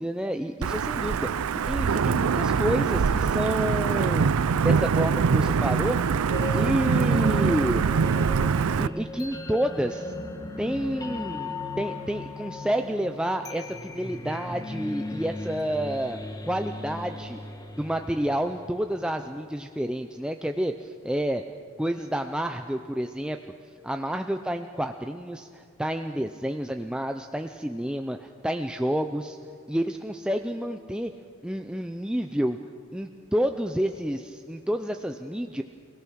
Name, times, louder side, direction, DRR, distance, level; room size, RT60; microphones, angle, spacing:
voice 1, 0.0-4.3 4.6-6.0 6.5-7.9 8.8-10.1 10.6-16.2 16.5-17.4 17.8-21.4 21.8-23.4 23.8-29.4 29.7-31.1 31.4-32.6 32.9-35.6, equal, 5° right, 6 dB, 0.5 m, -29 dB
Wind / Thunder / Rain, 0.6-8.9, right 6 dB, 90° right, 0.5 m, -23 dB
sound 1, 6.3-19.3, left 2 dB, 20° left, 1.3 m, -37 dB
29.0 x 17.5 x 6.3 m, 2.1 s
head